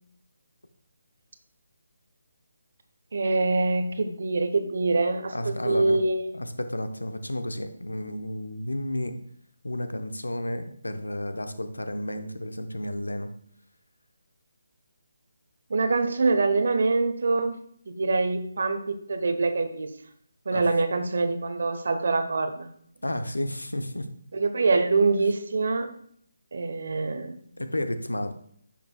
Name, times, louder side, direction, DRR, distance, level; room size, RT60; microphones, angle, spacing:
voice 1, 3.1-6.3 15.7-17.6 17.9-19.9 20.5-22.7 24.3-25.9 26.5-27.4, right 3 dB, 60° right, 9 dB, 0.9 m, -25 dB
voice 2, 5.3-6.0 6.3-9.2 9.6-13.3 20.5-20.6 23.0-24.1 27.6-28.3, left 1 dB, 90° left, 9 dB, 0.8 m, -32 dB
10.0 x 5.9 x 2.3 m, 0.63 s
figure-of-eight pair, 155°, 0 cm